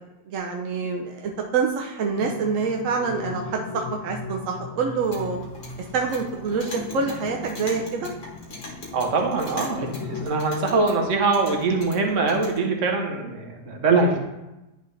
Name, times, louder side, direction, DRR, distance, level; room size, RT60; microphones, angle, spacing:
voice 1, 0.3-5.4 5.9-8.1, right 5 dB, 70° right, 1 dB, 0.7 m, -26 dB
sound 1, 2.2-10.3, left 5 dB, 80° left, 1.3 m, -38 dB
Clock, 4.9-12.6, left 2 dB, 45° left, 1.6 m, -41 dB
voice 2, 8.9-14.2, right 3 dB, 50° right, 2 dB, 1.1 m, -23 dB
10.5 x 4.0 x 3.3 m, 0.97 s
omnidirectional pair, 2.0 m